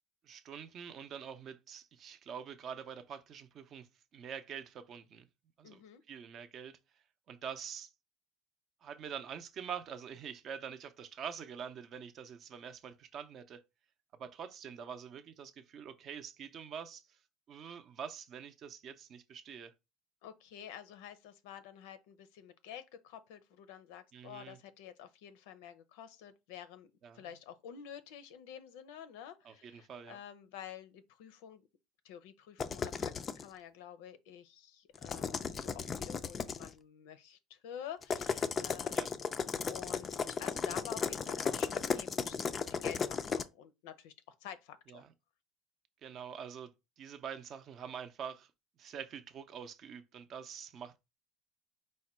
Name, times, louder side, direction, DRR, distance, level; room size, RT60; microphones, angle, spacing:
voice 1, 0.2-5.3 5.6-6.8 7.3-7.9 8.8-13.6 14.2-17.2 17.5-19.7 24.1-24.6 27.0-27.3 29.4-30.2 38.9-39.1 44.9-45.1 46.0-48.5 48.8-51.0, right 7 dB, 35° right, 0.5 m, -45 dB
voice 2, 5.6-6.0 20.2-31.6 32.0-42.4 42.8-44.1 44.4-45.0, left 9 dB, 90° left, 0.6 m, -49 dB
sound 1, 32.6-33.4 34.9-36.7 38.0-43.4, left 6 dB, 25° left, 0.3 m, -35 dB
4.8 x 2.2 x 4.2 m
cardioid pair, 155°, 0 cm